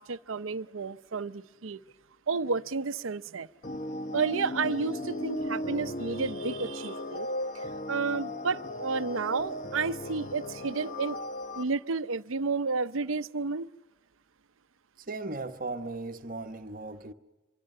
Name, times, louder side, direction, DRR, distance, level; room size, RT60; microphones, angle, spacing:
voice 1, 0.0-1.8 2.3-3.5 4.1-7.3 7.5-11.2 11.5-13.7, right 4 dB, 75° right, 0.7 m, -31 dB
sound 1, 3.6-11.6, left 1 dB, 40° left, 0.9 m, -36 dB
voice 2, 15.1-17.1, right 3 dB, 40° right, 1.0 m, -37 dB
25.0 x 23.5 x 6.6 m
head